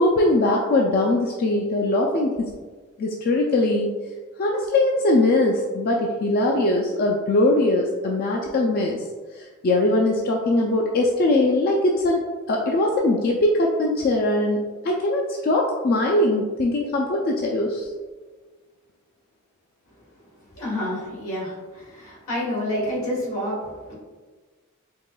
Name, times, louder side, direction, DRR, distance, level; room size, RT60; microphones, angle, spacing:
voice 1, 0.0-2.5 3.0-3.9 4.4-9.0 9.4-12.2 12.5-17.9, left 2 dB, 45° left, -1 dB, 0.3 m, -21 dB
voice 2, 20.5-23.9, left 1 dB, 75° left, -5 dB, 1.4 m, -29 dB
4.6 x 2.8 x 2.2 m, 1.4 s
head